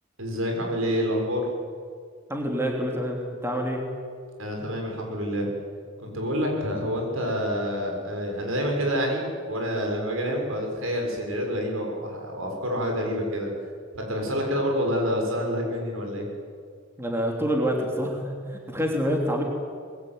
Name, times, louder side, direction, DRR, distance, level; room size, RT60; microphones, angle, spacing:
voice 1, 0.2-1.5 4.4-5.5 6.0-13.5 13.9-16.3, equal, 75° right, 1 dB, 7.0 m, -27 dB
voice 2, 2.3-3.8 17.0-19.4, equal, 10° right, 1 dB, 3.3 m, -27 dB
25.0 x 21.5 x 9.5 m, 2.1 s
head